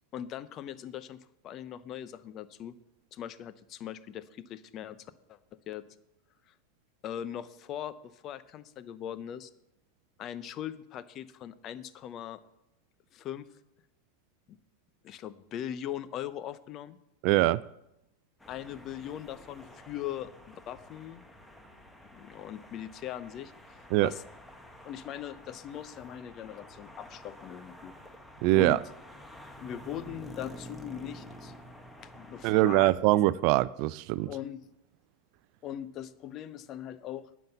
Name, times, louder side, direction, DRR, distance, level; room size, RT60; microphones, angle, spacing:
voice 1, 0.1-1.2 1.4-2.7 3.1-5.4 5.7-5.8 7.0-9.5 10.2-12.4 13.1-13.5 14.5-14.6 15.0-17.0 18.5-21.2 22.1-24.2 24.8-27.9 28.5-28.8 29.6-31.5 32.0-32.9 34.3-34.6 35.6-37.3, left 10 dB, 40° left, 0.8 m, -40 dB
voice 2, 17.2-17.6 23.9-24.1 28.4-28.8 32.4-34.3, right 17 dB, 50° right, 0.4 m, -23 dB
sound 1, 18.4-32.9, equal, 5° left, 1.4 m, -50 dB
10.5 x 7.4 x 6.8 m
hypercardioid pair, 90°, 0 cm